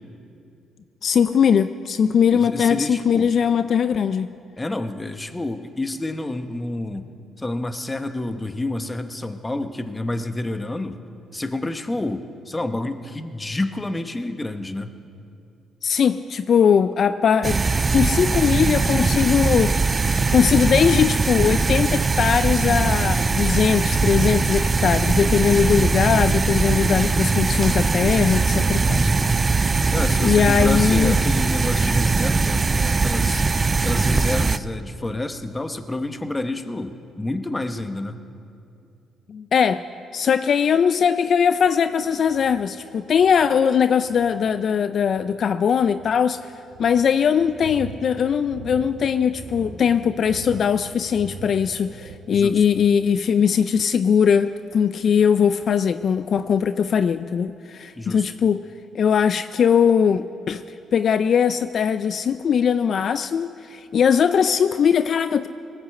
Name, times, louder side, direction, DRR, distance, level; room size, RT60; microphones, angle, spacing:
voice 1, 1.0-4.3 15.8-17.6 17.9-19.7 20.3-29.1 30.2-31.2 39.3-39.8 40.1-46.4 46.8-58.7 58.9-60.6 60.9-65.5, left 7 dB, 55° left, 12 dB, 0.4 m, -20 dB
voice 2, 2.3-3.3 4.6-7.1 7.4-11.0 11.3-14.9 29.0-29.3 29.9-33.4 33.8-38.2 52.3-52.6 58.0-58.3, left 2 dB, 15° left, 9 dB, 0.9 m, -29 dB
sound 1, 17.4-34.6, right 4 dB, 30° right, 0.4 m, -21 dB
sound 2, 41.8-52.2, right 5 dB, 70° right, 2.1 m, -41 dB
19.0 x 8.1 x 7.7 m, 2.6 s
cardioid pair, 90°, 0 cm